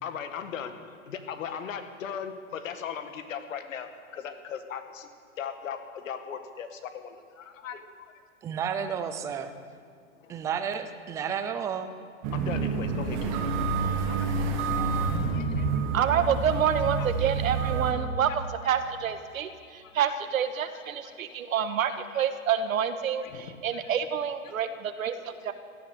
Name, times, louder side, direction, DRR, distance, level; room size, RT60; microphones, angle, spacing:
voice 1, 0.0-5.1 5.4-8.1 9.2-9.3 10.2-10.3 12.3-13.3 14.0-14.3 14.8-15.7 16.1-16.3 17.0-17.1 18.3-18.4 19.8-20.1 20.7-21.4 22.1-22.3 23.2-23.9 25.0-25.1, left 7 dB, 70° left, 8 dB, 1.9 m, -39 dB
voice 2, 8.4-9.6 10.3-11.9, right 7 dB, 10° right, 9 dB, 0.3 m, -31 dB
sound 1, 12.2-17.9, right 4 dB, 45° right, 2.3 m, -28 dB
voice 3, 15.9-25.5, right 8 dB, 85° right, 9 dB, 1.5 m, -28 dB
16.5 x 13.0 x 6.6 m, 2.3 s
hypercardioid pair, 135°, 40 cm